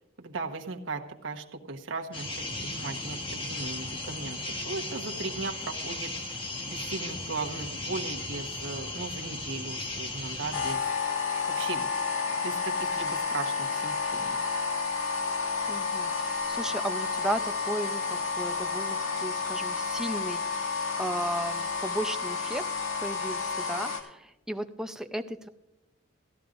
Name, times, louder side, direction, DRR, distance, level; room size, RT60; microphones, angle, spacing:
voice 1, 0.2-10.9 11.6-11.9 12.4-14.4, right 3 dB, 65° right, 2 dB, 1.2 m, -37 dB
sound 1, 2.1-10.7, left 2 dB, 25° left, 1.3 m, -36 dB
sound 2, 10.5-24.0, left 5 dB, 85° left, 1.8 m, -31 dB
voice 2, 15.7-22.6 23.0-25.5, right 1 dB, 5° right, 7 dB, 0.5 m, -35 dB
17.0 x 12.0 x 2.6 m, 0.93 s
head